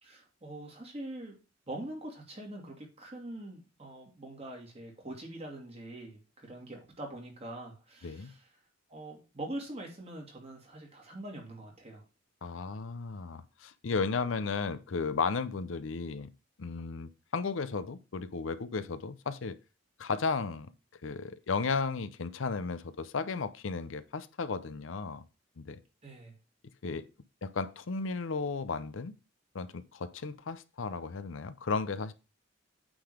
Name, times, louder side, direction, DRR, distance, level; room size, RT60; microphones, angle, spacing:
voice 1, 0.0-1.4 1.7-8.5 8.9-12.0 26.0-26.3, right 1 dB, 30° right, 2.4 m, -43 dB
voice 2, 8.0-8.3 12.4-16.3 16.6-19.6 20.0-20.7 21.0-25.2 25.6-25.8 26.8-27.1 27.4-29.1 29.5-32.1, left 4 dB, 75° left, 0.6 m, -34 dB
8.8 x 3.9 x 4.9 m
head